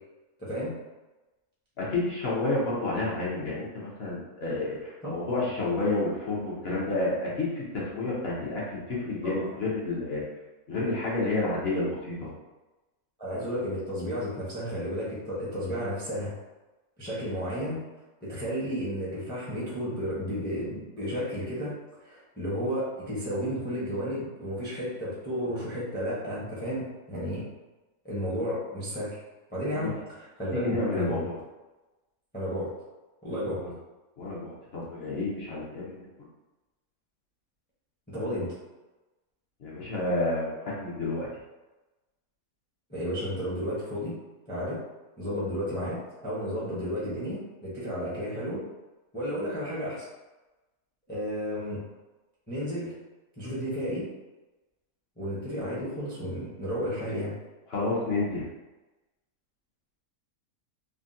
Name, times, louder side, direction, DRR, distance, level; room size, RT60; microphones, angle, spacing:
voice 1, 0.4-0.7 5.0-5.2 9.2-9.5 13.2-16.3 17.0-17.8 18.2-21.7 22.0-27.4 28.0-29.2 29.5-31.2 32.3-32.7 33.2-33.6 38.1-38.6 42.9-44.1 44.5-44.8 45.2-48.6 49.1-50.1 51.1-51.8 52.5-52.9 53.4-54.1 55.2-57.4, equal, 10° left, -8 dB, 0.5 m, -32 dB
voice 2, 1.8-10.2 10.7-12.3 29.7-29.9 30.5-31.4 33.6-33.7 34.2-36.1 39.6-41.3 57.7-58.5, left 2 dB, 50° left, -6 dB, 0.8 m, -30 dB
3.5 x 2.2 x 2.6 m, 1.1 s
omnidirectional pair, 1.6 m